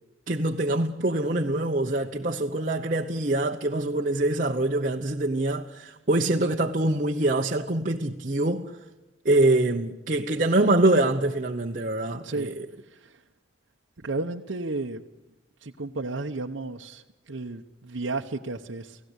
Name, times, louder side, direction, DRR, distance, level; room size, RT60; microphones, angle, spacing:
voice 1, 0.3-8.7 9.2-12.7, right 2 dB, 40° right, 0.9 m, -24 dB
voice 2, 12.8-13.2 14.0-15.0 15.6-19.0, right 3 dB, 70° right, 0.9 m, -33 dB
30.0 x 17.0 x 8.1 m
head